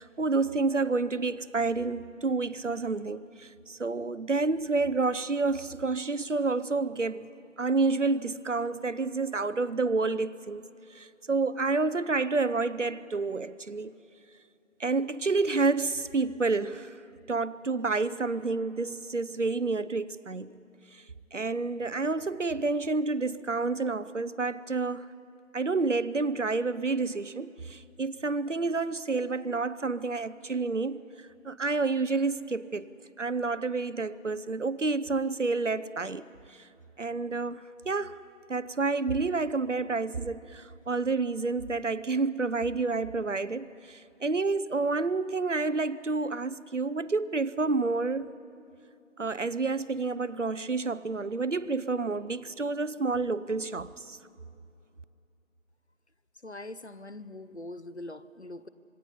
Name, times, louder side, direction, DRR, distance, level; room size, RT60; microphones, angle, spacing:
voice 1, 0.0-7.3 7.6-13.9 14.8-17.0 17.3-20.6 20.9-21.0 21.3-25.1 25.5-32.9 33.2-36.7 37.0-38.2 38.5-48.3 49.2-54.2, right 3 dB, 65° right, 0.8 m, -29 dB
voice 2, 56.4-58.7, left 2 dB, 55° left, 0.9 m, -42 dB
26.0 x 22.0 x 5.5 m
figure-of-eight pair, 175°, 40 cm